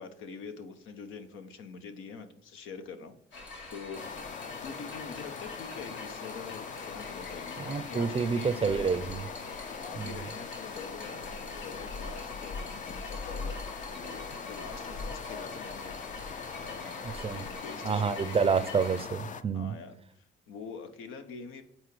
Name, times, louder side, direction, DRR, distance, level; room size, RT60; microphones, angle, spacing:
voice 1, 0.0-4.1 4.6-9.0 9.8-18.4 19.5-21.6, left 5 dB, 90° left, 0.8 m, -45 dB
sound 1, 3.3-19.0, left 2 dB, 70° left, 1.9 m, -43 dB
sound 2, 3.9-19.4, left 6 dB, 40° left, 0.4 m, -42 dB
voice 2, 7.6-9.2 10.0-10.3 17.2-17.4 17.8-19.7, right 5 dB, 30° right, 0.4 m, -28 dB
8.0 x 4.3 x 3.2 m
cardioid pair, 90°, 20 cm